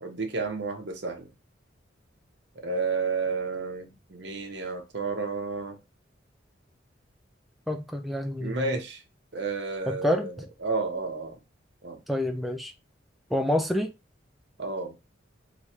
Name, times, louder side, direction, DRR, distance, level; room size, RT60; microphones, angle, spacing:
voice 1, 0.0-1.3 2.6-5.8 8.4-9.0 9.3-11.4 11.8-12.0 14.6-15.0, right 4 dB, 65° right, 0.9 m, -31 dB
voice 2, 7.7-8.8 9.9-10.3 12.1-12.7 13.3-13.9, left 1 dB, ahead, 0.4 m, -28 dB
3.1 x 2.4 x 4.2 m
head